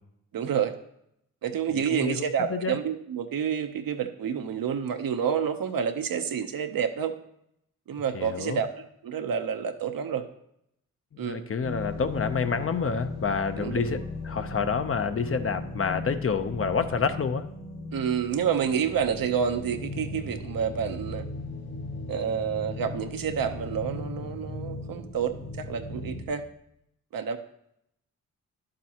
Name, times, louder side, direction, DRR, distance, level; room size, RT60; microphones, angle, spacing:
voice 1, 0.3-0.7 1.4-7.1 7.9-8.7 9.0-10.3 11.2-11.5 13.6-13.8 17.9-21.3 22.1-26.5 27.1-27.4, right 7 dB, 70° right, 7 dB, 0.8 m, -29 dB
voice 2, 1.7-2.8 8.1-8.6 11.2-14.0 14.2-17.5, left 5 dB, 40° left, 9 dB, 0.6 m, -28 dB
sound 1, 11.6-26.3, left 2 dB, 85° left, 2.8 m, -37 dB
11.0 x 7.6 x 2.9 m, 0.77 s
cardioid pair, 65°, 35 cm